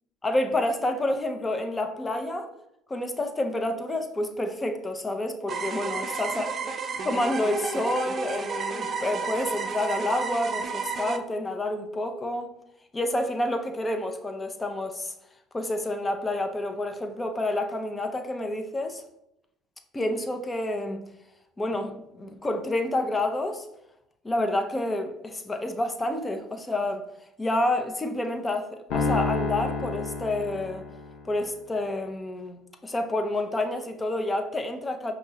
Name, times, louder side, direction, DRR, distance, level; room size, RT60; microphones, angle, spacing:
voice 1, 0.2-2.5 2.9-6.5 7.0-12.5 12.9-15.1 15.5-19.0 19.9-21.0 21.6-23.7 24.2-27.0 27.4-30.9 31.2-35.1, left 1 dB, 20° left, 6 dB, 0.6 m, -29 dB
sound 1, 5.5-11.2, right 4 dB, 40° right, 0.5 m, -32 dB
Piano, 28.9-31.3, left 4 dB, 70° left, 0.7 m, -29 dB
5.4 x 2.9 x 2.7 m, 0.82 s
hypercardioid pair, 70°, 0 cm